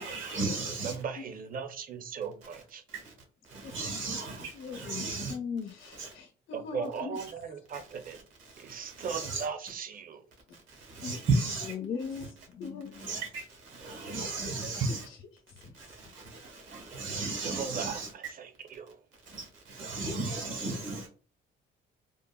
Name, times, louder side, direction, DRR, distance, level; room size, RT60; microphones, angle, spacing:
voice 1, 0.0-0.9 3.6-5.3 6.0-6.1 9.0-9.4 10.9-11.7 13.0-13.4 13.8-15.1 16.7-18.1 19.7-21.1, right 3 dB, 80° right, 1.2 m, -33 dB
voice 2, 0.8-2.8 6.5-8.3 8.6-10.2 17.4-19.0, right 6 dB, 45° right, 0.5 m, -38 dB
voice 3, 4.5-5.0 5.6-7.2 11.0-11.3 11.8-12.0 12.6-13.1 14.4-16.1 20.2-20.9, left 5 dB, 80° left, 0.7 m, -45 dB
voice 4, 5.3-5.7 11.6-13.1 17.2-17.3, left 6 dB, 35° left, 0.4 m, -37 dB
3.8 x 2.0 x 2.2 m
cardioid pair, 90°, 20 cm